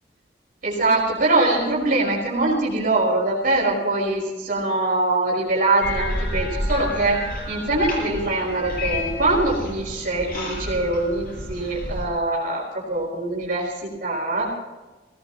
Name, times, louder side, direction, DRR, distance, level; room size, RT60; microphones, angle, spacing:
voice 1, 0.6-14.5, right 2 dB, 50° right, -5 dB, 5.9 m, -23 dB
sound 1, 5.8-12.1, left 1 dB, 55° left, 6.4 m, -30 dB
22.5 x 18.5 x 3.1 m, 1.2 s
head